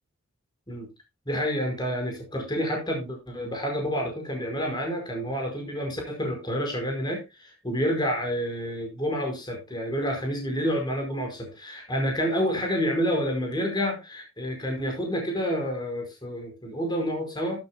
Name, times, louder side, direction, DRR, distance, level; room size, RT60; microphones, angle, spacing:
voice 1, 1.3-17.6, equal, 20° left, 2 dB, 5.0 m, -29 dB
12.0 x 12.0 x 2.2 m, 0.23 s
head